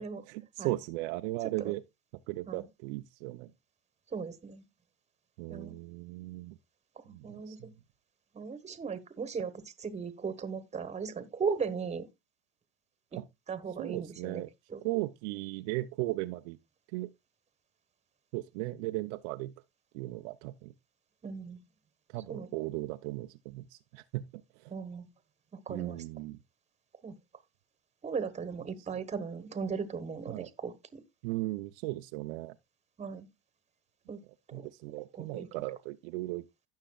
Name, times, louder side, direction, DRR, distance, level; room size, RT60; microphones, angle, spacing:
voice 1, 0.0-1.8 2.3-3.5 5.4-6.6 7.1-7.7 13.2-13.3 13.8-14.5 14.8-16.6 16.9-17.1 18.3-19.5 19.9-20.7 22.1-23.6 23.9-24.2 25.7-26.4 30.3-30.5 31.2-32.5 34.5-36.4, right 19 dB, 65° right, 0.7 m, -36 dB
voice 2, 4.1-4.6 5.5-5.7 7.2-7.6 8.3-9.5 9.8-12.1 13.5-14.4 14.7-14.8 21.2-21.6 22.3-22.5 24.7-25.1 25.7-26.0 27.0-27.1 28.0-31.0 33.0-33.3 34.1-34.2 34.5-34.6 35.1-35.5, right 5 dB, 20° right, 1.3 m, -37 dB
16.0 x 6.5 x 2.3 m
supercardioid pair, 120°, 35 cm